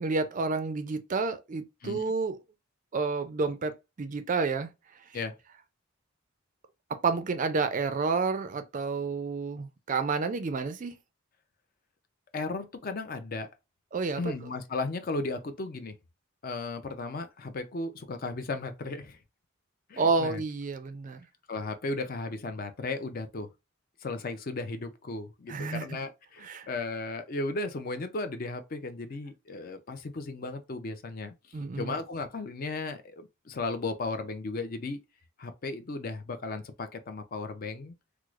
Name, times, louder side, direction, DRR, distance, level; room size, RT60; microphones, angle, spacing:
voice 1, 0.0-2.4 2.9-4.7 7.0-10.9 13.9-14.2 20.0-21.2 25.5-25.8 26.4-26.7 31.5-32.0, right 4 dB, 35° right, 0.4 m, -30 dB
voice 2, 1.8-2.1 5.1-5.4 12.3-13.5 14.2-15.9 16.4-19.2 19.9-20.4 21.5-23.5 24.0-31.3 31.8-35.0 35.4-37.9, left 3 dB, 45° left, 0.5 m, -35 dB
4.6 x 2.0 x 2.4 m
head